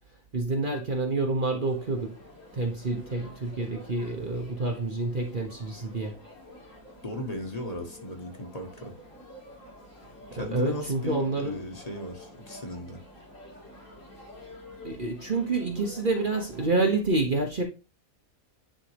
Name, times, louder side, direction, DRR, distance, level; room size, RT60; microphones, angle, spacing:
voice 1, 0.3-2.2 2.5-6.2 10.4-11.6 14.8-17.6, right 3 dB, 40° right, 1.0 m, -28 dB
sound 1, 1.6-16.7, left 1 dB, 65° left, 3.0 m, -49 dB
voice 2, 7.0-8.9 10.3-13.0, left 1 dB, 30° left, 1.4 m, -36 dB
10.0 x 3.7 x 3.3 m
omnidirectional pair, 1.4 m